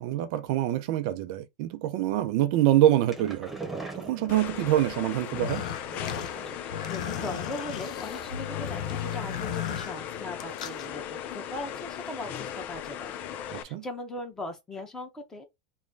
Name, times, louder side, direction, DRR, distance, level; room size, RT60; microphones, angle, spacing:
voice 1, 0.0-3.5 3.9-5.6 13.5-13.8, right 13 dB, 65° right, 0.6 m, -25 dB
sound 1, 2.8-4.9 5.9-6.8 7.2-7.6 7.9-8.0 8.3-8.4, right 3 dB, 5° right, 1.3 m, -41 dB
sound 2, 4.3-13.6, left 9 dB, 45° left, 0.4 m, -38 dB
sound 3, 5.2-10.9, left 9 dB, 80° left, 0.7 m, -36 dB
voice 2, 6.5-13.1 13.5-15.4, left 2 dB, 15° left, 1.2 m, -39 dB
3.1 x 2.3 x 3.9 m
hypercardioid pair, 105°, 4 cm